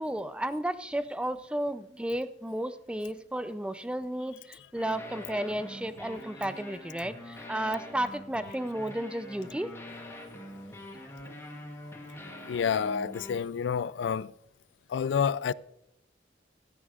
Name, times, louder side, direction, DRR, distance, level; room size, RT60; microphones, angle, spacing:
voice 1, 0.0-9.7, right 1 dB, 5° right, 0.4 m, -33 dB
sound 1, 4.7-13.4, left 1 dB, 15° left, 1.9 m, -44 dB
voice 2, 12.5-14.3 14.9-15.5, left 7 dB, 85° left, 0.3 m, -29 dB
16.0 x 12.5 x 2.4 m
head